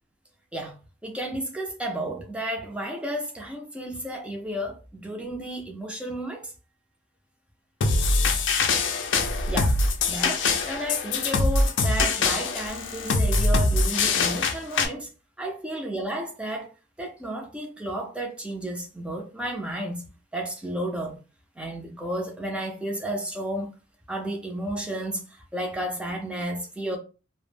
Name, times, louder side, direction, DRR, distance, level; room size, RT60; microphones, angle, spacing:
voice 1, 1.0-6.5 9.5-9.8 10.1-15.1 15.4-16.7 17.0-20.0 20.3-21.2 21.6-23.7 24.1-25.2 25.5-27.0, right 1 dB, 5° right, 0.4 m, -32 dB
sound 1, 7.8-14.9, left 3 dB, 70° left, 0.4 m, -23 dB
2.0 x 2.0 x 3.2 m
head